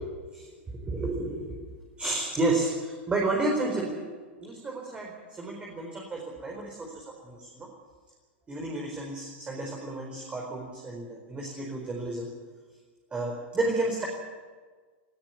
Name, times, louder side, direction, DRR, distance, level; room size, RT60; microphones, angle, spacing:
voice 1, 0.8-1.6 2.0-4.1 4.4-7.7 8.5-12.3 13.1-14.1, right 2 dB, 20° right, -1 dB, 4.6 m, -31 dB
19.0 x 16.5 x 9.6 m, 1.5 s
hypercardioid pair, 110°, 6 cm